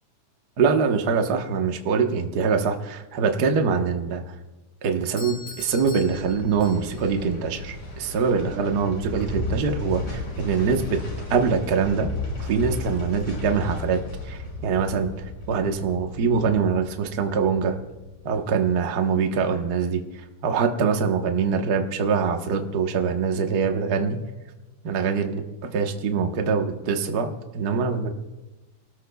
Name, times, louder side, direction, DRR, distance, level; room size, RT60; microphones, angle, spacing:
voice 1, 0.6-4.3 4.8-11.0 11.3-12.1 12.4-17.8 18.2-24.2 24.8-28.1, right 5 dB, 65° right, 4 dB, 0.9 m, -24 dB
Doorbell, 5.2-7.2, left 4 dB, 10° left, 4.9 m, -42 dB
sound 1, 5.6-18.7 19.0-19.1, left 2 dB, 65° left, 6.6 m, -34 dB
28.0 x 19.0 x 2.3 m, 1.1 s
omnidirectional pair, 3.7 m